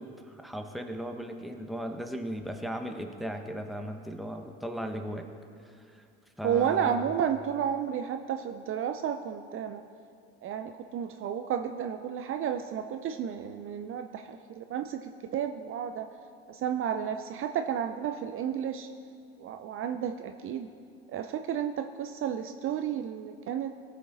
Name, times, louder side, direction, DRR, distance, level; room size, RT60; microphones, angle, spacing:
voice 1, 0.0-5.3 6.4-7.0, equal, ahead, 4 dB, 1.2 m, -37 dB
voice 2, 6.4-9.8 10.4-16.1 16.5-18.9 19.4-20.7 21.1-23.7, right 8 dB, 45° right, 7 dB, 0.6 m, -32 dB
18.0 x 6.5 x 4.1 m, 2.4 s
hypercardioid pair, 65°, 31 cm